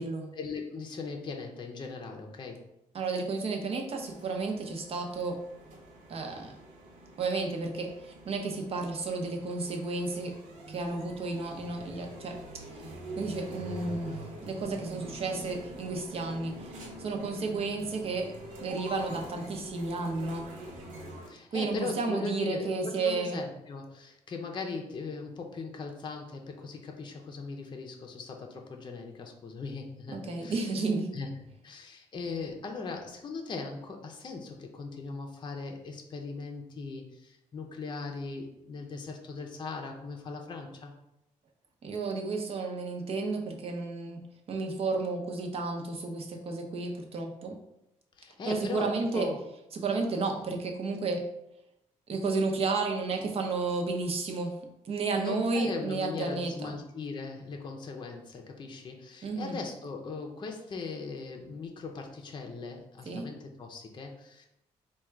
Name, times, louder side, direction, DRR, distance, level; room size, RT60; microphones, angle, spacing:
voice 1, 0.3-2.6 21.3-30.6 31.1-31.3 31.6-40.9 48.2-49.4 55.2-64.5, left 4 dB, 35° left, 2 dB, 0.6 m, -39 dB
voice 2, 2.9-5.4 6.1-6.5 7.2-10.3 10.7-12.6 13.2-14.2 14.4-18.3 18.6-20.5 21.5-23.4 30.1-31.1 41.8-44.2 44.5-47.6 48.5-49.3 49.7-51.2 52.1-54.5 54.9-56.5 59.2-59.6 63.1-63.3, right 3 dB, 50° right, 2 dB, 0.7 m, -32 dB
sound 1, 3.9-21.3, right 1 dB, 85° right, 1.0 m, -45 dB
3.6 x 2.3 x 4.5 m, 0.85 s
cardioid pair, 120°, 13 cm